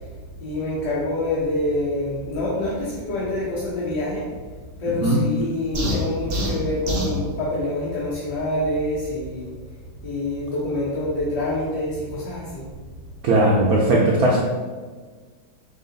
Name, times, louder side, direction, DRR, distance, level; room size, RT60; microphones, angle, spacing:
voice 1, 0.4-4.3 4.8-9.6 10.0-12.7, left 1 dB, 60° left, -8 dB, 1.5 m, -26 dB
sound 1, 5.7-7.2, left 1 dB, 90° right, 0.5 m, -25 dB
voice 2, 13.2-14.5, right 1 dB, 70° right, -4 dB, 0.9 m, -18 dB
5.4 x 2.4 x 3.9 m, 1.5 s
omnidirectional pair, 2.1 m